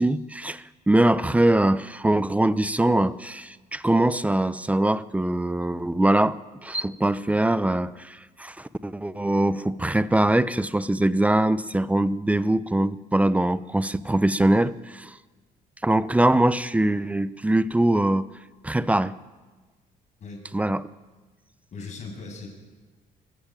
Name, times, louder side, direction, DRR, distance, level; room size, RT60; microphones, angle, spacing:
voice 1, 0.0-15.1 15.8-18.3 18.6-19.2 20.5-20.9, right 1 dB, 10° right, 16 dB, 0.7 m, -22 dB
voice 2, 21.7-22.5, left 4 dB, 45° left, 2 dB, 7.5 m, -38 dB
23.5 x 15.0 x 9.0 m, 1.3 s
cardioid pair, 110°, 17 cm